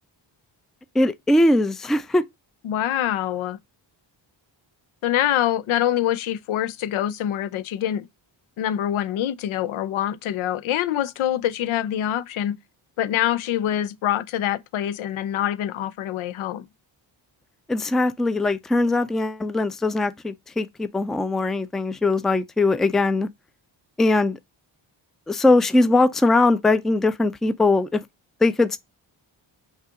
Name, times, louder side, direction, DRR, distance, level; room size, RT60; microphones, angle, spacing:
voice 1, 1.0-2.2 17.7-23.3 24.0-24.4 25.3-28.0 28.4-28.8, left 2 dB, ahead, 0.3 m, -20 dB
voice 2, 2.6-3.6 5.0-8.1 8.6-12.6 13.0-16.7, left 11 dB, 90° left, 0.6 m, -25 dB
5.5 x 2.4 x 3.6 m
cardioid pair, 80°, 47 cm